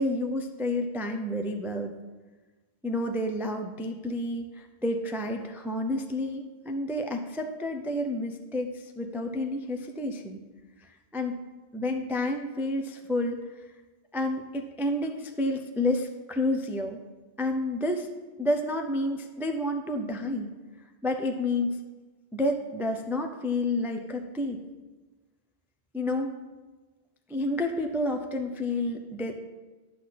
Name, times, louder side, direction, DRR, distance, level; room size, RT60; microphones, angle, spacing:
voice 1, 0.0-1.9 2.8-10.4 10.8-11.4 11.7-13.7 14.1-17.0 17.4-18.1 18.4-20.5 21.0-21.8 22.3-24.6 25.9-26.4 27.3-29.4, left 1 dB, 5° right, 4 dB, 0.4 m, -30 dB
10.0 x 4.2 x 7.5 m, 1.3 s
omnidirectional pair, 1.1 m